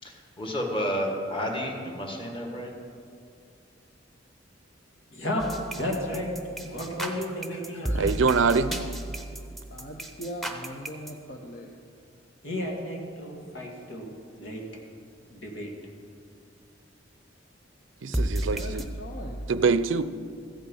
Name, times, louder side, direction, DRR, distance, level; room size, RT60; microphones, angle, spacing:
voice 1, 0.0-2.7, equal, 30° left, 1 dB, 1.7 m, -31 dB
voice 2, 5.1-6.3 6.6-8.6 12.4-14.1 14.4-14.6 15.3-15.7, left 1 dB, 90° left, 0 dB, 2.4 m, -33 dB
sound 1, 5.4-11.1 18.1-18.8, right 1 dB, ahead, 0.8 m, -32 dB
voice 3, 7.9-8.7 18.0-18.8 19.5-20.0, right 4 dB, 85° right, 13 dB, 0.5 m, -24 dB
voice 4, 9.7-11.7 18.5-19.5, equal, 50° left, 1 dB, 0.8 m, -40 dB
14.5 x 9.0 x 5.5 m, 2.4 s
head